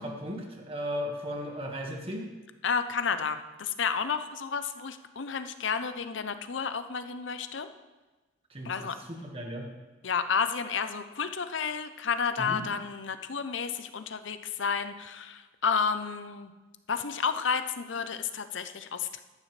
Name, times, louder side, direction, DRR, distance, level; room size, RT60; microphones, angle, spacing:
voice 1, 0.0-2.2 8.5-9.7 12.4-12.6, equal, 30° right, 1 dB, 1.7 m, -36 dB
voice 2, 2.6-7.7 8.6-9.0 10.0-16.5 16.9-19.2, left 6 dB, 80° left, 10 dB, 0.7 m, -31 dB
14.0 x 11.5 x 3.3 m, 1.2 s
head